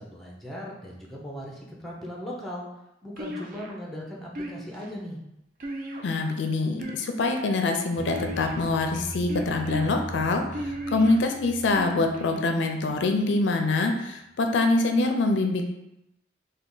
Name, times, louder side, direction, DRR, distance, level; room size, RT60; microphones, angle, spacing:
voice 1, 0.0-2.7 3.0-5.2, equal, ahead, -3 dB, 0.5 m, -38 dB
sound 1, 3.2-3.8 4.4-4.9 5.6-6.3 6.7-7.4 8.1-8.8 9.3-9.9 10.5-11.2 11.8-12.4, equal, 45° right, 0.4 m, -35 dB
voice 2, 6.0-10.4 10.9-15.6, left 3 dB, 75° left, 4 dB, 0.4 m, -24 dB
sound 2, 7.9-13.6, right 1 dB, 75° right, 1.0 m, -41 dB
3.3 x 2.2 x 3.8 m, 0.87 s
head